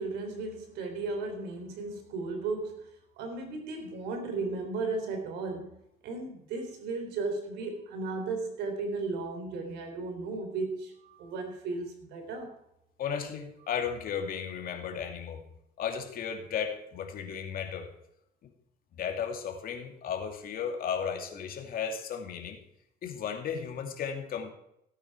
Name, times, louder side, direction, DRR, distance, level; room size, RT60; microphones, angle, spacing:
voice 1, 0.0-2.9 3.2-5.8 6.0-12.5, right 3 dB, 85° right, 4 dB, 3.6 m, -35 dB
voice 2, 13.0-15.4 15.8-17.9 18.9-22.6 23.0-24.5, left 7 dB, 60° left, 4 dB, 2.5 m, -34 dB
17.0 x 8.9 x 4.7 m, 0.76 s
cardioid pair, 110°, 17 cm